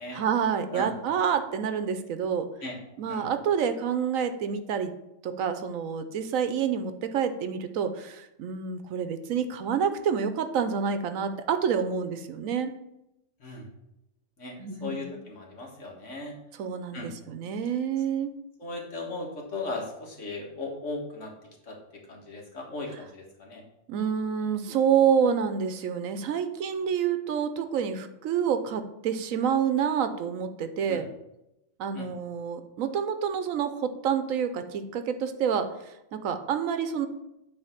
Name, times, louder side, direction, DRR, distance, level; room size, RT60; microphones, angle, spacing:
voice 1, 0.1-2.5 3.0-4.9 5.2-12.7 14.6-15.1 16.6-18.3 23.9-31.1 31.8-35.7 36.1-37.1, right 7 dB, 85° right, 9 dB, 1.1 m, -28 dB
voice 2, 14.4-16.3 16.9-17.1 18.6-21.3 21.7-21.8 22.1-23.6 30.9-31.0 31.9-32.1, left 2 dB, 65° left, -1 dB, 1.9 m, -37 dB
9.0 x 3.4 x 5.8 m, 0.89 s
omnidirectional pair, 1.4 m